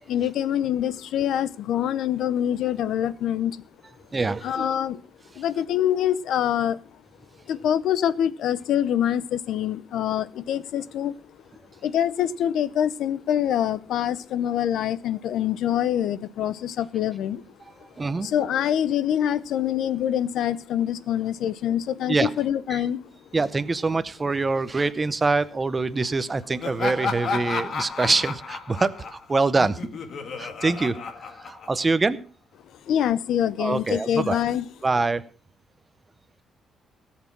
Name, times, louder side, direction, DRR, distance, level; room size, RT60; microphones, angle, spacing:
voice 1, 0.1-3.6 4.4-5.0 5.4-6.8 7.5-11.1 11.8-17.4 18.2-23.0 32.9-34.6, left 10 dB, 70° left, 17 dB, 0.7 m, -25 dB
voice 2, 4.1-4.7 18.0-18.3 22.1-22.3 22.7-22.8 23.3-29.8 30.4-31.0 31.4-32.2 33.6-34.4 34.8-35.2, right 3 dB, 20° right, 13 dB, 0.7 m, -24 dB
Laughter, 26.6-32.0, left 5 dB, 45° left, 1.7 m, -32 dB
18.0 x 7.5 x 5.9 m, 0.42 s
cardioid pair, 175°, 0 cm